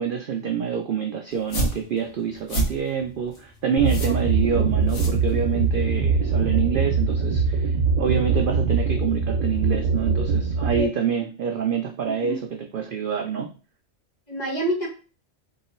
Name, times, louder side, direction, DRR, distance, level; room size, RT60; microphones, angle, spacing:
voice 1, 0.0-13.5, right 7 dB, 65° right, 4 dB, 0.5 m, -27 dB
sound 1, 1.3-5.8, right 1 dB, 85° left, 1.6 m, -30 dB
sound 2, 3.8-10.8, right 4 dB, 80° right, 1.0 m, -22 dB
voice 2, 12.0-12.4 14.3-14.9, right 1 dB, 35° left, -2 dB, 1.4 m, -28 dB
3.8 x 2.9 x 4.2 m, 0.36 s
omnidirectional pair, 1.4 m